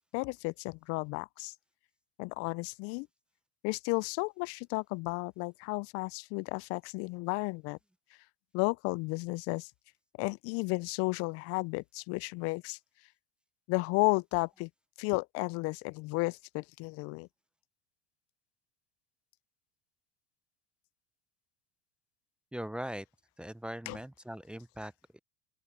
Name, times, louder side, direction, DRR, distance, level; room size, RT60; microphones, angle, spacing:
voice 1, 0.1-1.5 2.2-3.1 3.6-7.8 8.5-9.7 10.2-12.8 13.7-14.7 15.0-17.3 23.9-24.0, left 27 dB, 50° left, 0.5 m, -33 dB
voice 2, 22.5-23.1 23.4-25.2, equal, 5° right, 0.7 m, -40 dB
open air
hypercardioid pair, 80°, 30 cm